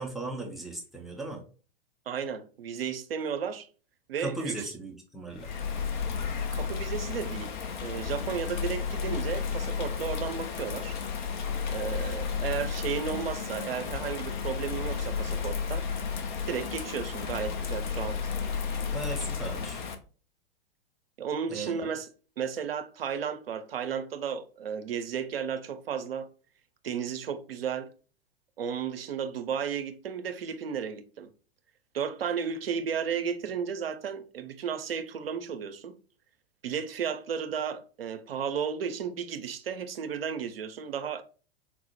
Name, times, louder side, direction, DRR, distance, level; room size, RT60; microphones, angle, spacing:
voice 1, 0.0-1.4 4.2-5.5 18.9-19.9 21.5-21.9, right 2 dB, ahead, 0.3 m, -37 dB
voice 2, 2.1-3.7 4.1-4.6 6.5-7.6 7.8-11.0 11.7-15.9 16.5-18.2 21.2-22.1 22.4-26.3 26.8-27.9 28.6-31.3 31.9-35.9 36.6-41.2, right 7 dB, 75° right, 0.5 m, -33 dB
Bird vocalization bird call bird song / Rain, 5.3-19.9, left 6 dB, 50° left, 0.6 m, -32 dB
4.3 x 2.0 x 2.7 m
figure-of-eight pair, 100°, 30 cm